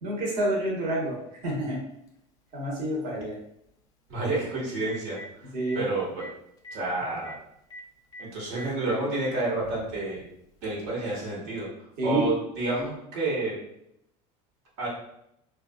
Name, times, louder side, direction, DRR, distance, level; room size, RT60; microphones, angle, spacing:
voice 1, 0.0-1.2 1.4-1.8 2.5-3.3 5.5-5.8 12.0-12.3, right 1 dB, 50° right, -4 dB, 1.3 m, -28 dB
Telephone, 2.1-2.2 4.3-4.4 4.7-5.3 5.7-5.8 6.2-6.3 6.6-6.8 7.2-7.4 7.7-7.8 8.1-8.7 9.7-9.8 11.2-11.3, left 1 dB, 25° left, 0.4 m, -42 dB
voice 2, 4.1-5.2 5.7-6.3 6.7-7.3 8.2-10.2 10.6-11.7 12.0-13.6 14.8-14.9, right 2 dB, 70° right, -4 dB, 1.4 m, -29 dB
3.9 x 2.4 x 2.3 m, 0.78 s
cardioid pair, 150°, 15 cm